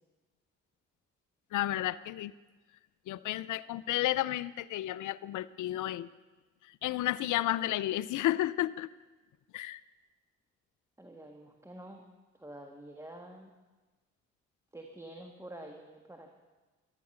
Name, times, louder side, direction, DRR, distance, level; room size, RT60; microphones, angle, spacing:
voice 1, 1.5-2.3 3.1-6.1 6.8-8.9 9.5-9.8, left 14 dB, 70° left, 18 dB, 0.5 m, -32 dB
voice 2, 11.0-12.0 12.3-13.5 14.7-16.3, right 1 dB, 10° right, 3 dB, 1.8 m, -48 dB
13.0 x 12.5 x 6.7 m, 1.2 s
hypercardioid pair, 45°, 32 cm